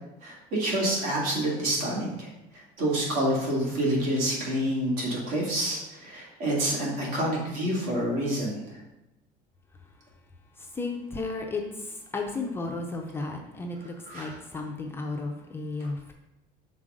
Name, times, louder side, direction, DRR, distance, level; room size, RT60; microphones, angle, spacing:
voice 1, 0.2-2.3 2.8-8.6 14.1-14.3, right 1 dB, 65° right, -4 dB, 2.2 m, -27 dB
voice 2, 10.6-16.1, left 3 dB, 15° left, 1 dB, 0.4 m, -34 dB
6.4 x 3.9 x 3.8 m, 0.93 s
cardioid pair, 175°, 16 cm